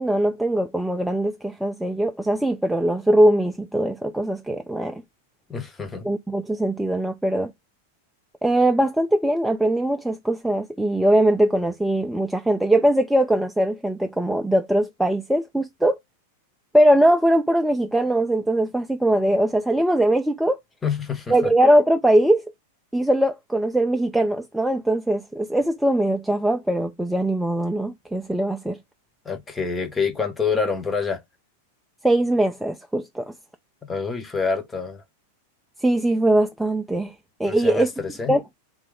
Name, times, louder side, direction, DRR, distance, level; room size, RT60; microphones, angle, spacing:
voice 1, 0.0-5.0 6.0-7.5 8.4-16.0 16.7-20.6 21.3-22.4 22.9-28.8 32.0-33.3 35.8-37.1 37.4-37.9 38.3-38.4, right 1 dB, 5° right, 0.4 m, -21 dB
voice 2, 5.5-6.1 20.8-21.5 29.2-31.2 33.8-35.0 37.4-38.4, left 5 dB, 15° left, 0.7 m, -27 dB
2.9 x 2.3 x 3.5 m
figure-of-eight pair, 95°, 0 cm